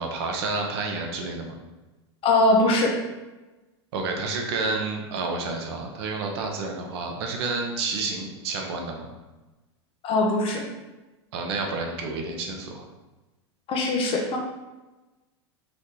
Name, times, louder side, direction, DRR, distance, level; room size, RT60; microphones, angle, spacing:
voice 1, 0.0-1.5 3.9-9.1 11.3-12.8, right 3 dB, 65° right, 2 dB, 1.0 m, -30 dB
voice 2, 2.2-2.9 10.0-10.6 13.7-14.4, left 2 dB, 40° left, 1 dB, 1.0 m, -21 dB
3.8 x 3.7 x 3.8 m, 1.1 s
hypercardioid pair, 105°, 14 cm